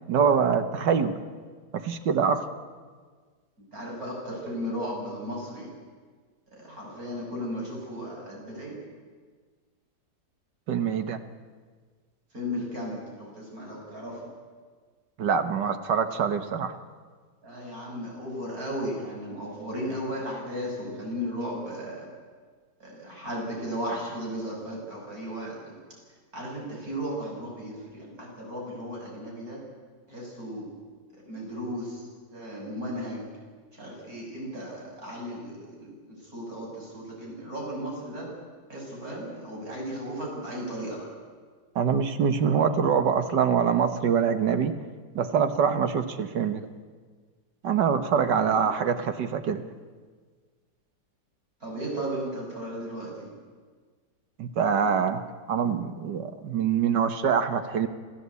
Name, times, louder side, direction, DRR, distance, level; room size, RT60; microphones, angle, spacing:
voice 1, 0.1-1.2 1.7-2.4 10.7-11.2 15.2-16.7 41.8-44.8 45.2-46.7 47.6-49.6 54.4-55.2 55.5-57.9, right 7 dB, 80° right, 9 dB, 1.9 m, -24 dB
voice 2, 3.7-5.7 6.5-8.8 12.3-14.2 17.4-22.1 22.8-25.8 26.3-29.6 30.1-30.7 31.3-33.3 33.7-38.3 38.7-41.1 48.4-48.7 51.6-53.3, equal, 55° right, -2 dB, 6.9 m, -35 dB
27.0 x 15.0 x 8.3 m, 1.5 s
omnidirectional pair, 1.8 m